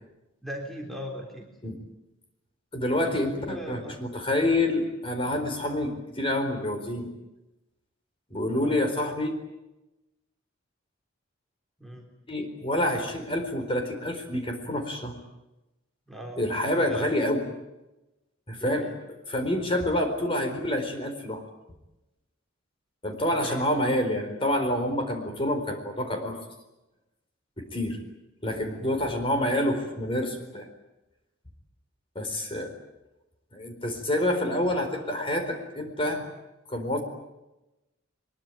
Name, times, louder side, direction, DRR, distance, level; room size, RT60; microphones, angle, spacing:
voice 1, 0.4-1.5 3.0-4.0 8.5-8.8 11.8-12.1 16.1-17.1 18.5-19.0 23.2-23.6, equal, ahead, 1 dB, 3.5 m, -39 dB
voice 2, 2.7-7.1 8.3-9.3 12.3-15.1 16.4-17.4 18.5-18.9 19.3-21.4 23.0-26.4 27.6-28.0 28.4-30.7 32.1-32.7 33.5-36.2 36.7-37.0, left 1 dB, 25° left, 5 dB, 4.4 m, -27 dB
23.0 x 22.5 x 9.2 m, 0.98 s
head